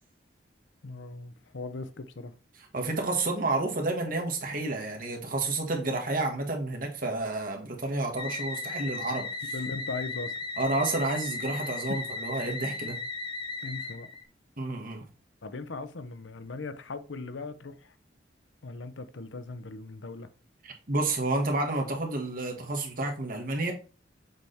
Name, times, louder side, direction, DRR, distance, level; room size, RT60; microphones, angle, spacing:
voice 1, 0.8-2.4 9.5-10.3 11.9-12.0 13.6-14.1 15.4-17.9 18.6-20.3, left 3 dB, 90° left, 0.7 m, -39 dB
voice 2, 2.7-9.3 10.6-13.0 14.6-15.0 20.6-23.7, right 2 dB, 50° right, 1.8 m, -30 dB
sound 1, 8.2-14.2, left 3 dB, 25° left, 0.8 m, -36 dB
7.4 x 3.6 x 4.2 m
head